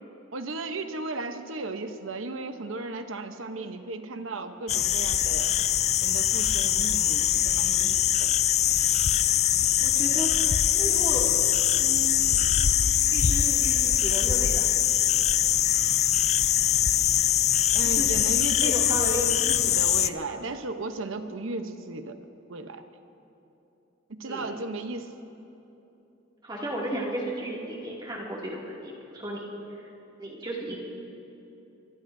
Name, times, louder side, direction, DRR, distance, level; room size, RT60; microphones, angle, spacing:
voice 1, 0.3-5.5 6.0-8.3 17.7-18.7 19.5-22.2 22.5-22.8 24.1-25.1, right 3 dB, 80° right, 8 dB, 0.9 m, -35 dB
sound 1, 4.7-20.1, left 10 dB, 35° left, 0.3 m, -23 dB
voice 2, 9.8-11.3 11.8-12.4 13.1-14.8 17.8-18.3 18.6-19.3 20.3-20.4 24.3-24.6 26.4-29.5 29.7-29.9 30.2-30.8, right 1 dB, 20° right, -4 dB, 2.5 m, -34 dB
24.5 x 21.5 x 2.7 m, 3.0 s
head